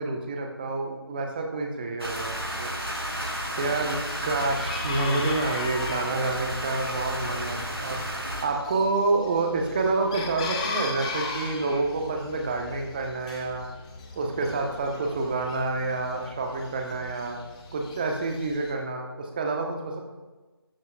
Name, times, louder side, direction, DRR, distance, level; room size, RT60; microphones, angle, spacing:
voice 1, 0.0-2.7 3.6-13.7 14.1-17.4 17.7-20.0, right 3 dB, 20° right, 2 dB, 1.2 m, -28 dB
sound 1, 2.0-8.4, equal, 85° right, 4.6 m, -32 dB
Chicken rooster, 2.1-18.7, left 3 dB, 15° left, 1.3 m, -39 dB
22.0 x 13.0 x 2.5 m, 1.2 s
figure-of-eight pair, 160°, 13 cm